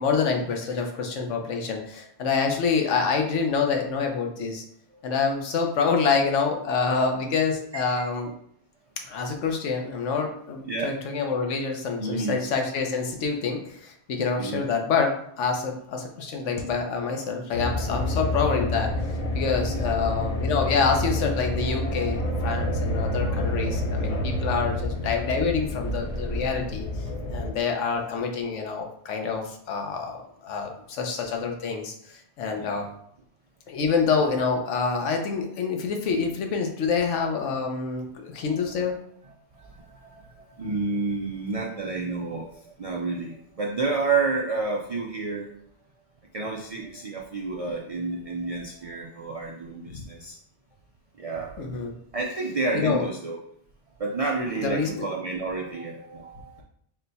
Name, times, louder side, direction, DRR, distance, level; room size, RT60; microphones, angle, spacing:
voice 1, 0.0-4.6 5.0-8.3 9.0-18.9 19.3-26.8 27.3-32.9 33.7-39.0 49.9-50.0 51.6-51.9 52.7-53.1 54.6-55.1, left 5 dB, 80° left, 3 dB, 1.0 m, -27 dB
voice 2, 7.7-8.2 10.7-10.9 12.0-12.4 14.4-14.6 16.3-16.4 17.8-17.9 18.3-18.4 19.2-19.9 32.6-32.8 38.3-38.5 39.6-45.5 46.3-50.4 51.2-51.6 52.1-53.4 54.0-56.6, right 3 dB, 65° right, -1 dB, 0.3 m, -30 dB
sound 1, 17.5-27.5, left 1 dB, 40° left, 0.6 m, -28 dB
4.0 x 2.2 x 4.0 m, 0.67 s
omnidirectional pair, 1.2 m